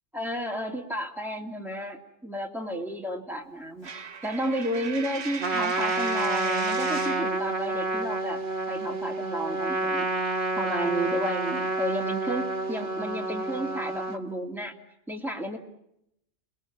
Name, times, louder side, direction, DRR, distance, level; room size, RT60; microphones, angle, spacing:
voice 1, 0.1-3.9 4.2-10.1 10.6-14.7 15.1-15.6, right 1 dB, ahead, 2 dB, 2.7 m, -32 dB
Coin (dropping), 3.8-7.3, right 5 dB, 70° right, 1.5 m, -37 dB
Trumpet, 5.4-14.2, right 2 dB, 45° right, 1.6 m, -29 dB
30.0 x 21.0 x 7.4 m, 0.78 s
omnidirectional pair, 1.2 m